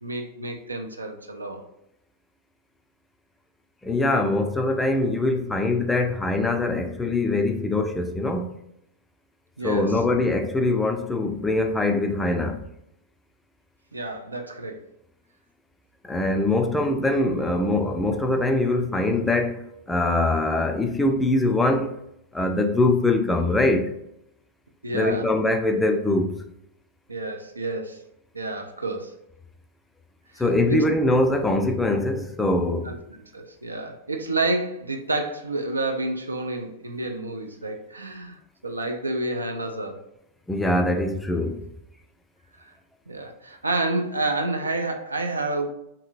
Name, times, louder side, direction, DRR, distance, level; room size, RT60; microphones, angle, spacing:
voice 1, 0.0-1.7 9.6-10.0 13.9-14.9 24.8-25.3 27.1-28.0 28.3-29.2 30.3-30.4 30.7-30.8 32.9-40.1 43.1-45.7, right 2 dB, 80° right, 0.4 m, -29 dB
voice 2, 3.8-8.5 9.6-12.6 16.0-21.9 22.3-23.9 24.9-26.3 30.4-33.0 40.5-41.6, left 2 dB, 10° left, 0.4 m, -23 dB
2.8 x 2.7 x 2.5 m
figure-of-eight pair, 90°, 0 cm